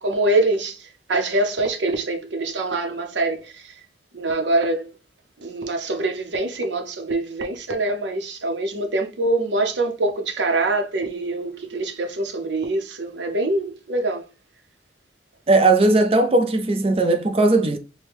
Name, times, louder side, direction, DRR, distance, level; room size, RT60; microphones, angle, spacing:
voice 1, 0.0-3.7 4.1-4.9 5.4-14.3, right 2 dB, 70° right, 0.7 m, -24 dB
voice 2, 15.5-17.8, right 2 dB, 30° right, 0.5 m, -18 dB
4.7 x 2.2 x 3.4 m
head